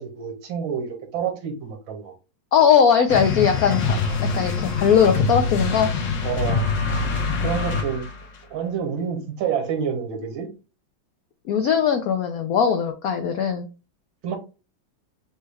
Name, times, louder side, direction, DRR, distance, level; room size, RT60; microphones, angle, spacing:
voice 1, 0.0-2.1 4.0-4.2 6.2-6.6 7.4-8.1 8.5-10.5 14.2-14.4, right 7 dB, 75° right, 4 dB, 1.8 m, -28 dB
voice 2, 2.5-4.0 4.3-5.9 11.5-13.7, left 7 dB, 90° left, 6 dB, 0.8 m, -19 dB
sound 1, 3.1-8.2, left 4 dB, 55° left, 1.1 m, -24 dB
6.0 x 2.2 x 3.4 m, 0.31 s
omnidirectional pair, 2.2 m